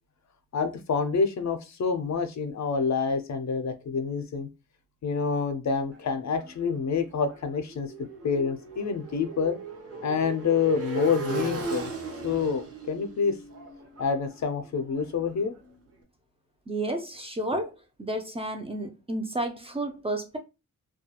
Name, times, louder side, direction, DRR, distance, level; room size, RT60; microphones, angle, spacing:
voice 1, 0.5-4.5 5.0-7.9 8.2-9.6 10.0-11.9 12.2-13.4 14.0-15.5, left 5 dB, 55° left, 0.5 m, -27 dB
Motorcycle, 5.9-15.8, right 4 dB, 45° right, 0.7 m, -38 dB
voice 2, 16.7-17.7 18.0-20.4, right 1 dB, 20° right, 0.4 m, -31 dB
2.3 x 2.2 x 2.8 m
wide cardioid pair, 120°, 34 cm